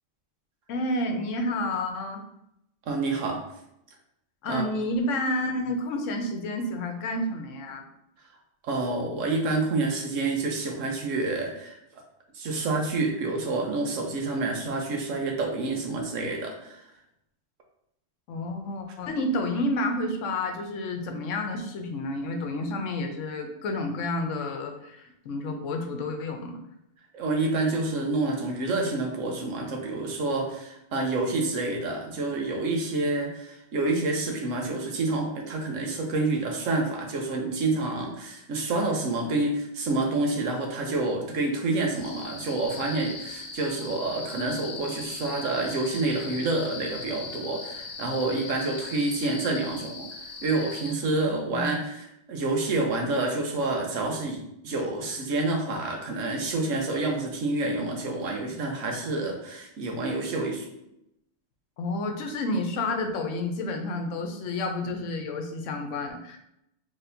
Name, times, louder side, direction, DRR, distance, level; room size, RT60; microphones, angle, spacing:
voice 1, 0.7-2.2 4.4-7.9 18.3-26.5 51.2-51.8 61.8-66.4, left 1 dB, 75° left, 4 dB, 1.0 m, -30 dB
voice 2, 2.9-3.4 4.5-4.6 8.6-11.8 12.3-16.8 27.1-50.1 50.4-60.7, right 2 dB, 80° right, 1 dB, 1.2 m, -28 dB
sound 1, 41.9-50.9, left 4 dB, 55° left, 0.7 m, -39 dB
4.2 x 3.3 x 2.6 m, 0.81 s
omnidirectional pair, 1.3 m